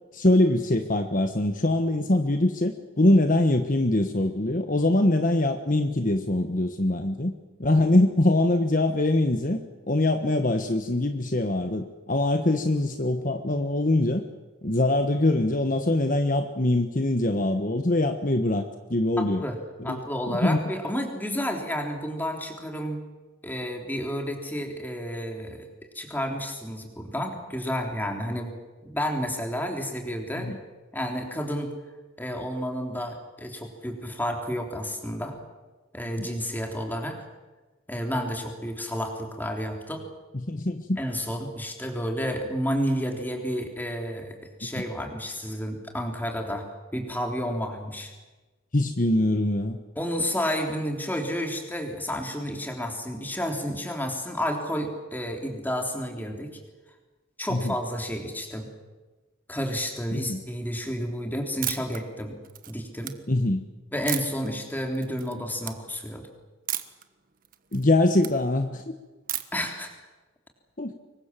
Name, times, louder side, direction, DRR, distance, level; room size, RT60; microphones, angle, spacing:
voice 1, 0.1-7.3 7.6-9.6 9.9-14.2 14.6-19.4 19.8-20.6 30.4-30.6 36.2-36.3 40.3-41.0 44.6-44.8 48.7-49.8 57.5-57.7 60.1-60.4 63.3-63.6 67.7-68.9 70.8-70.9, left 1 dB, 40° left, 7 dB, 1.3 m, -23 dB
voice 2, 19.2-19.6 19.8-23.0 23.4-25.7 26.0-28.5 28.8-30.5 30.9-31.7 32.2-35.4 35.9-37.2 37.9-40.1 41.0-46.7 46.9-48.1 50.0-56.5 57.4-58.7 59.5-62.4 62.7-63.2 63.9-66.2 69.5-69.9, equal, 10° left, 3 dB, 3.5 m, -31 dB
sound 1, 61.6-62.0 62.4-63.1 64.1-64.5 64.9-65.3 65.6-65.8 66.7-67.0 67.4-68.3 69.3-69.7, right 12 dB, 45° right, 1.4 m, -32 dB
25.5 x 23.0 x 7.6 m, 1.2 s
head